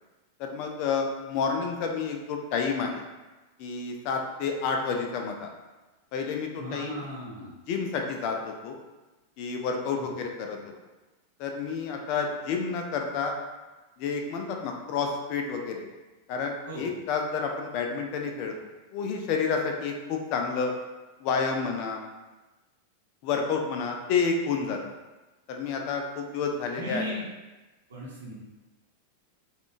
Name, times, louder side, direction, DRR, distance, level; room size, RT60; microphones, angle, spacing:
voice 1, 0.4-3.0 3.6-5.5 6.1-7.0 7.7-8.8 9.4-10.6 11.4-13.3 14.0-15.9 16.3-18.5 18.9-20.7 21.2-22.0 23.2-24.8 25.5-27.1, left 5 dB, 45° left, 2 dB, 0.4 m, -29 dB
voice 2, 6.6-7.5 9.9-10.1 16.7-16.8 26.7-27.2 27.9-28.3, equal, 65° right, -5 dB, 0.9 m, -37 dB
3.5 x 2.3 x 2.4 m, 1.1 s
figure-of-eight pair, 90°, 0 cm